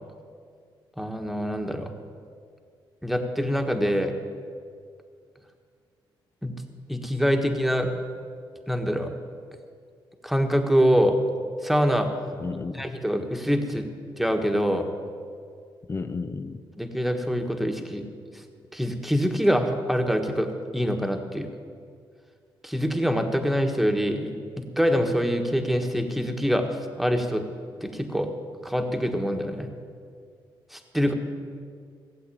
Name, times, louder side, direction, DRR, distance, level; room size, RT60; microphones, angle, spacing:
voice 1, 1.0-1.9 3.0-4.2 6.4-6.5 6.9-7.9 8.7-9.1 10.2-11.2 11.6-12.1 12.7-13.9 14.2-14.9 16.8-18.0 18.7-21.5 22.6-26.7 27.0-27.4 27.8-28.3 28.6-29.7 30.7-31.1, equal, ahead, 4 dB, 1.5 m, -25 dB
voice 2, 12.4-12.9 15.9-16.6, left 4 dB, 30° left, 10 dB, 0.7 m, -32 dB
16.5 x 8.0 x 8.5 m, 2.1 s
cardioid pair, 95°, 9 cm